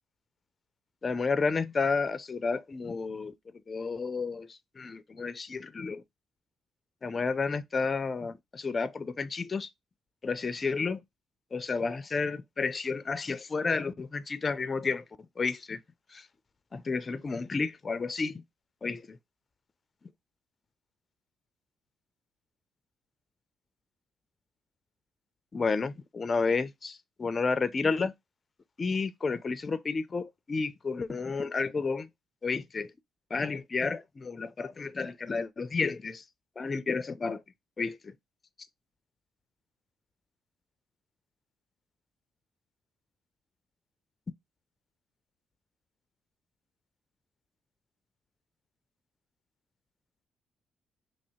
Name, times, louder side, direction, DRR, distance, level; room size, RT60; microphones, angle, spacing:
voice 1, 1.0-3.3 3.7-6.0 7.0-9.7 10.2-11.0 11.5-15.0 15.4-15.8 16.1-16.3 16.7-18.4 18.8-19.2 25.5-28.1 28.8-32.1 32.4-32.9 33.3-36.2 36.6-37.4 37.8-38.1, left 4 dB, 35° left, 0.4 m, -31 dB
2.9 x 2.8 x 4.2 m
cardioid pair, 90°, 0 cm